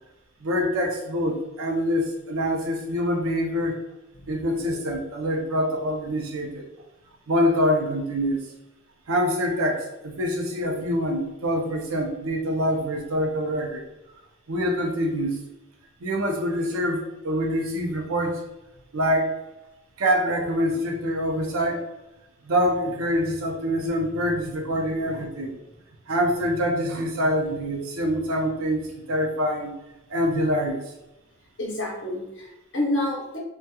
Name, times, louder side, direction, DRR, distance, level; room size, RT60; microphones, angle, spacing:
voice 1, 0.4-3.8 4.3-6.7 7.3-8.5 9.1-13.8 14.5-15.4 16.0-18.4 18.9-19.3 20.0-21.8 22.4-25.6 26.1-29.8 30.1-30.8, equal, 85° right, 1 dB, 0.5 m, -25 dB
voice 2, 31.6-33.4, left 1 dB, 60° left, -3 dB, 0.7 m, -28 dB
2.8 x 2.2 x 2.2 m, 0.93 s
head